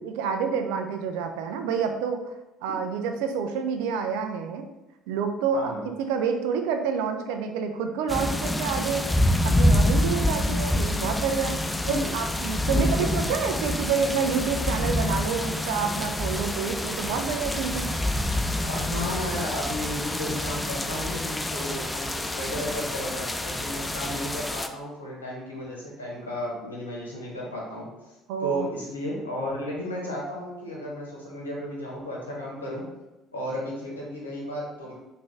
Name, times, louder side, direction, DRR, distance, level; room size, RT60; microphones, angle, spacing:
voice 1, 0.2-2.2 2.6-4.7 5.1-9.1 9.4-11.6 11.9-17.9 28.3-28.7, right 6 dB, 70° right, 6 dB, 0.4 m, -28 dB
voice 2, 5.5-5.8 11.8-11.9 12.7-13.1 18.6-32.8 33.3-34.9, left 1 dB, 90° left, -3 dB, 0.8 m, -34 dB
sound 1, 8.1-24.7, left 1 dB, 15° left, 0.3 m, -27 dB
3.6 x 2.4 x 3.3 m, 0.99 s
figure-of-eight pair, 55°, 0 cm